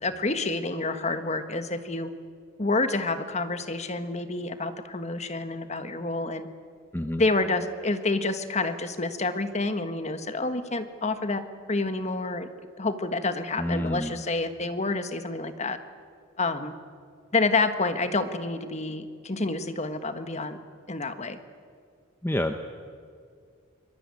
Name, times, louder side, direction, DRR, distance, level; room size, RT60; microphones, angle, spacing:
voice 1, 0.0-2.1 2.6-6.5 7.2-11.4 11.7-12.5 12.8-15.8 16.4-16.7 17.3-20.6 20.9-21.4, left 3 dB, 30° left, 9 dB, 1.4 m, -28 dB
voice 2, 13.6-14.1 22.2-22.5, left 1 dB, 10° left, 7 dB, 0.9 m, -28 dB
25.0 x 21.5 x 9.7 m, 2.2 s
head